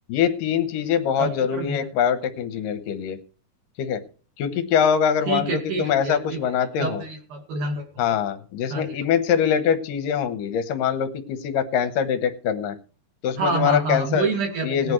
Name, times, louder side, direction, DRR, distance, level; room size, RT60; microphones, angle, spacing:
voice 1, 0.1-3.2 3.8-4.0 4.4-7.0 8.0-12.8 13.2-14.3 14.6-14.9, left 8 dB, 70° left, 9 dB, 2.1 m, -23 dB
voice 2, 1.2-1.8 5.3-6.4 6.8-7.8 8.7-9.0 13.4-14.9, right 3 dB, 50° right, 3 dB, 3.1 m, -27 dB
19.0 x 10.5 x 3.2 m, 0.36 s
omnidirectional pair, 5.2 m